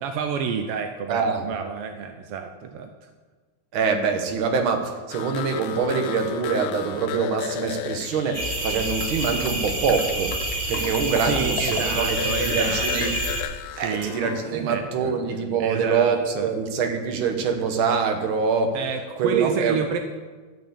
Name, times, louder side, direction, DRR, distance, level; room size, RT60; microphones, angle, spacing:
voice 1, 0.0-2.9 11.3-13.2 13.7-14.1 14.4-15.1 15.6-16.5 18.7-20.0, right 6 dB, 80° right, 5 dB, 1.3 m, -29 dB
voice 2, 1.1-1.5 3.7-13.1 13.8-18.8 19.2-19.8, right 5 dB, 55° right, 5 dB, 1.6 m, -24 dB
sound 1, 5.1-11.9 12.2-14.6, left 10 dB, 75° left, 1.6 m, -34 dB
sound 2, 8.3-13.4, right 1 dB, 25° right, 1.3 m, -27 dB
12.5 x 6.2 x 8.4 m, 1.4 s
omnidirectional pair, 3.5 m